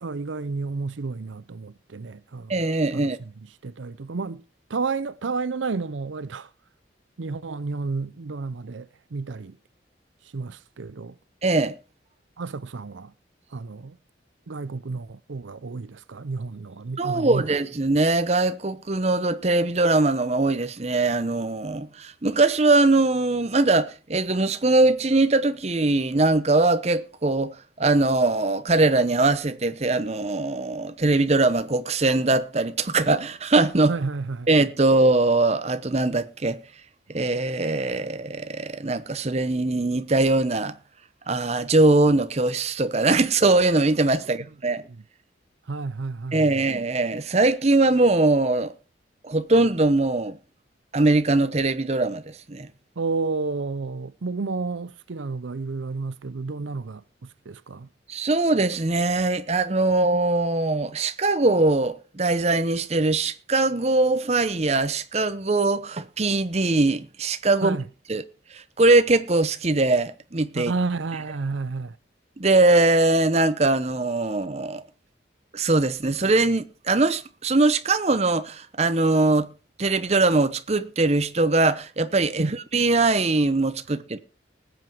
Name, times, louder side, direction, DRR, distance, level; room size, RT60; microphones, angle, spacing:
voice 1, 0.0-2.5 2.9-3.1 3.6-4.4 4.7-6.5 7.2-9.6 10.3-11.1 12.4-13.1 13.5-14.0 14.5-17.5 33.9-34.5 45.7-46.6 53.0-57.9 67.6-67.8 70.5-72.0 82.4-82.6, right 4 dB, 90° right, 0.6 m, -31 dB
voice 2, 2.5-3.2 11.4-11.8 17.0-33.9 34.5-36.6 37.1-40.8 41.3-44.8 46.3-48.7 49.2-50.4 50.9-52.7 58.1-67.8 68.1-68.2 68.5-70.7 72.4-74.8 75.5-79.5 79.8-84.2, right 2 dB, 35° right, 0.8 m, -21 dB
19.5 x 7.9 x 4.6 m
head